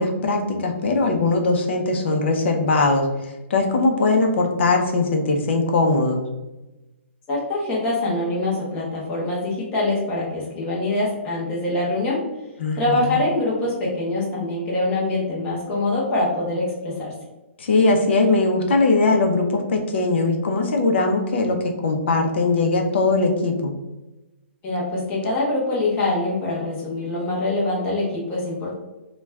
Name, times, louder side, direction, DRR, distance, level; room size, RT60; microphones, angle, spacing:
voice 1, 0.0-6.2 12.6-13.2 17.6-23.7, left 3 dB, 55° left, 3 dB, 0.6 m, -20 dB
voice 2, 7.3-12.2 12.7-17.1 24.6-28.8, left 2 dB, 15° left, -5 dB, 0.7 m, -24 dB
2.4 x 2.2 x 3.2 m, 1.0 s
hypercardioid pair, 170°, 7 cm